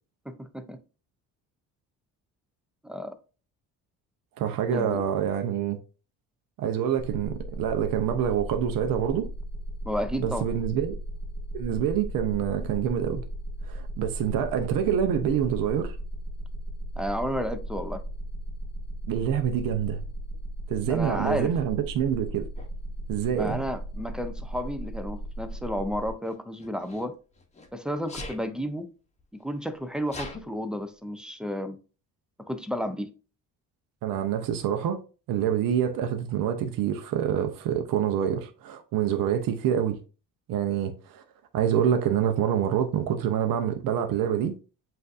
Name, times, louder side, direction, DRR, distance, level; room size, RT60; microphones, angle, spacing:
voice 1, 0.3-0.8 2.8-3.1 4.7-5.0 9.8-10.5 17.0-18.0 20.9-21.5 23.4-27.2 27.7-28.9 29.3-31.8 32.4-33.1, equal, ahead, 0.3 m, -32 dB
voice 2, 4.4-5.8 6.6-9.3 10.2-11.0 11.5-13.2 13.7-16.0 19.1-20.0 20.7-22.5 23.1-23.6 34.0-35.0 35.3-40.0 40.5-41.2 41.5-44.6, right 9 dB, 75° right, 0.7 m, -26 dB
sound 1, 7.0-26.1, right 1 dB, 25° right, 1.5 m, -36 dB
Sneeze, 22.6-22.7 23.8-24.2 26.2-27.7 28.1-28.4 29.2-29.3 29.5-30.4, left 2 dB, 20° left, 0.8 m, -41 dB
7.6 x 2.6 x 2.5 m
cardioid pair, 125°, 34 cm